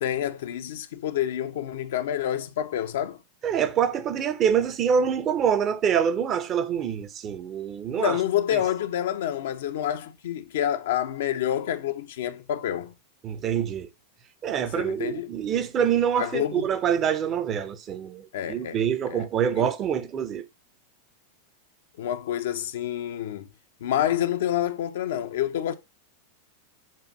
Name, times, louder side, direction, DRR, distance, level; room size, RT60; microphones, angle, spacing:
voice 1, 0.0-3.2 8.0-12.9 14.8-15.3 16.2-16.6 18.3-18.8 19.1-19.3 19.6-19.7 22.0-23.5 23.8-25.7, left 11 dB, 60° left, 0.6 m, -28 dB
voice 2, 3.4-8.2 8.5-8.6 13.2-13.9 14.4-20.4, right 8 dB, 30° right, 0.7 m, -25 dB
7.4 x 2.6 x 5.1 m
figure-of-eight pair, 90°, 0 cm